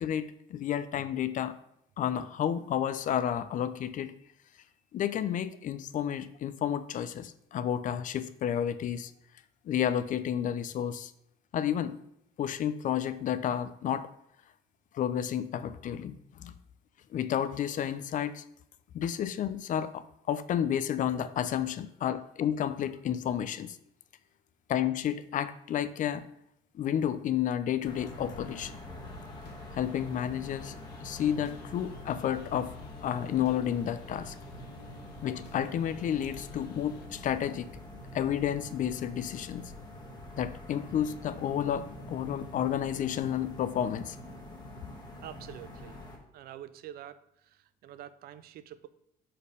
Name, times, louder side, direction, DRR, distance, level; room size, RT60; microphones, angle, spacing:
voice 1, 0.0-1.6 2.0-4.2 4.9-9.1 9.6-11.1 11.5-12.0 12.4-14.1 14.9-16.6 17.1-18.4 18.9-23.8 24.7-26.3 26.7-28.8 29.7-30.7 31.0-32.7 33.0-34.3 35.2-37.7 38.1-39.7 40.4-44.2, left 9 dB, 50° left, 13 dB, 0.4 m, -31 dB
sound 1, 27.8-46.2, left 1 dB, 25° left, 1.4 m, -45 dB
sound 2, 29.0-37.1, left 6 dB, 75° left, 1.0 m, -52 dB
voice 2, 45.2-46.0 46.3-48.9, right 11 dB, 65° right, 14 dB, 0.5 m, -47 dB
5.0 x 4.4 x 5.2 m, 0.75 s
cardioid pair, 110°, 17 cm